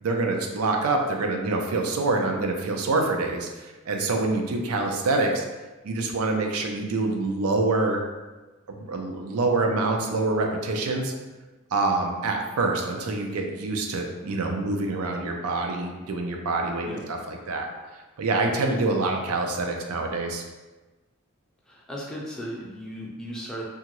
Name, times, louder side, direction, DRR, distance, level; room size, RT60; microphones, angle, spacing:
voice 1, 0.0-5.4 5.8-8.0 8.7-11.1 11.7-16.9 17.3-17.7 18.2-20.4, right 3 dB, 90° right, 2 dB, 0.4 m, -26 dB
voice 2, 21.7-23.6, equal, 5° left, -4 dB, 0.5 m, -36 dB
2.9 x 2.4 x 2.9 m, 1.2 s
head